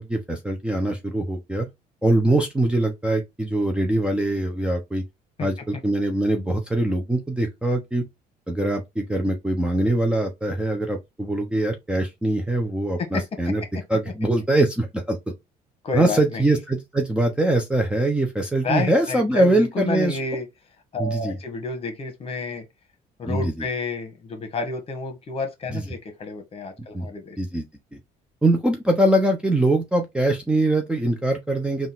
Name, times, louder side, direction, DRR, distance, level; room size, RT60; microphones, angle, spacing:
voice 1, 0.0-1.7 2.0-5.0 5.4-8.0 8.5-13.6 13.9-15.2 15.9-20.2 21.0-21.4 23.3-23.5 25.7-25.8 26.9-27.1 27.4-27.6 28.4-31.9, right 1 dB, 5° right, 0.6 m, -22 dB
voice 2, 13.0-13.5 15.8-16.4 18.6-20.5 20.9-22.6 23.2-27.4, left 4 dB, 35° left, 1.3 m, -30 dB
3.9 x 2.5 x 4.0 m
cardioid pair, 110°, 17 cm